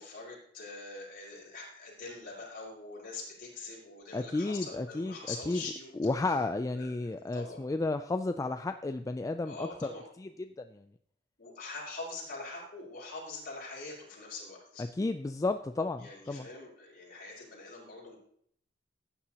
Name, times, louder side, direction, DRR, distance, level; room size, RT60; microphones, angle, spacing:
voice 1, 0.0-6.4 6.7-7.6 9.4-10.0 11.4-14.9 16.0-18.2, left 3 dB, 50° left, -4 dB, 4.8 m, -44 dB
voice 2, 4.1-5.2 5.5-5.6 6.0-9.9 10.2-10.3 10.7-10.8 14.8-16.5, left 2 dB, 20° left, 8 dB, 0.3 m, -32 dB
15.0 x 9.5 x 2.9 m, 0.67 s
head